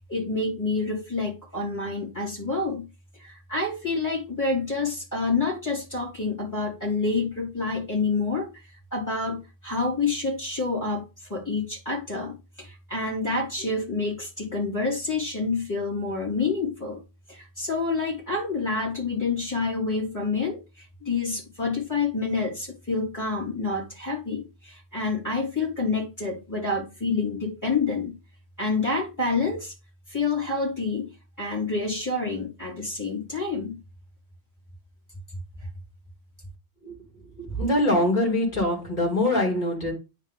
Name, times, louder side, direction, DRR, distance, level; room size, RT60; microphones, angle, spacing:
voice 1, 0.1-2.9 3.1-17.0 17.3-28.2 28.6-29.7 30.1-31.1 31.4-33.8, left 3 dB, 15° left, -5 dB, 3.4 m, -28 dB
voice 2, 37.4-39.9, left 1 dB, 35° left, -2 dB, 2.9 m, -23 dB
9.6 x 3.4 x 3.6 m, 0.27 s
omnidirectional pair, 1.3 m